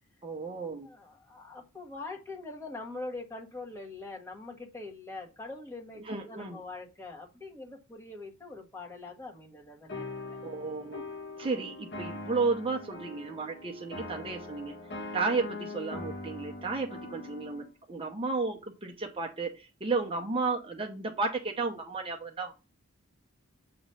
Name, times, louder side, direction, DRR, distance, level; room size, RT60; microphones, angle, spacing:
voice 1, 0.2-0.9 6.0-6.6 10.4-11.0 11.4-14.7 15.1-22.5, right 3 dB, 25° right, 1 dB, 0.8 m, -33 dB
voice 2, 0.8-10.4, left 3 dB, 15° left, 0 dB, 1.3 m, -43 dB
sound 1, 9.9-17.7, left 2 dB, 55° left, 1.4 m, -42 dB
7.7 x 3.1 x 5.5 m, 0.28 s
head